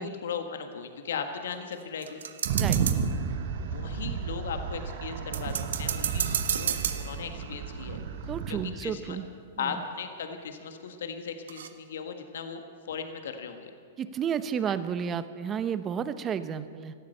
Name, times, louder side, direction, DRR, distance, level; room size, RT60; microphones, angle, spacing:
voice 1, 0.0-2.2 3.0-3.1 3.7-8.0 8.5-9.2 9.6-13.7, left 6 dB, 75° left, 6 dB, 1.5 m, -37 dB
sound 1, 1.5-3.2 5.3-7.6 9.8-9.9 10.4-10.5 11.5-11.7, right 8 dB, 75° right, 1.0 m, -32 dB
sound 2, 2.4-8.7, right 6 dB, 60° right, 1.4 m, -32 dB
voice 2, 8.3-9.2 9.6-9.7 14.0-16.9, right 8 dB, 25° right, 13 dB, 0.8 m, -32 dB
17.0 x 13.0 x 6.6 m, 2.1 s
hypercardioid pair, 115°, 0 cm